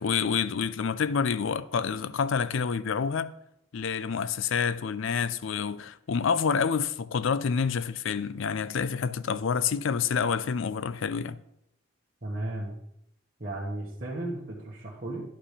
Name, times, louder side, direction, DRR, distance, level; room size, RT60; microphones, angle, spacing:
voice 1, 0.0-3.3 3.7-11.4, left 6 dB, 70° left, 0.4 m, -28 dB
voice 2, 12.2-12.8 13.4-15.2, right 1 dB, 40° right, 1.3 m, -34 dB
11.0 x 5.0 x 5.0 m
head